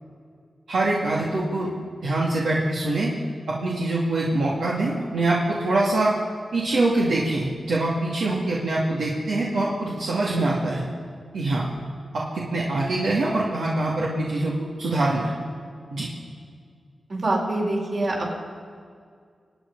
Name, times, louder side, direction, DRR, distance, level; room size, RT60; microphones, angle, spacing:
voice 1, 0.7-1.7 2.0-3.1 3.5-6.1 6.5-10.8 11.3-11.7 12.1-14.5 14.8-15.3 15.9-16.1, right 2 dB, 90° right, -5 dB, 2.3 m, -24 dB
voice 2, 17.1-18.5, right 2 dB, 60° right, -2 dB, 5.0 m, -25 dB
25.5 x 9.3 x 5.5 m, 2.1 s
cardioid pair, 65°, 0 cm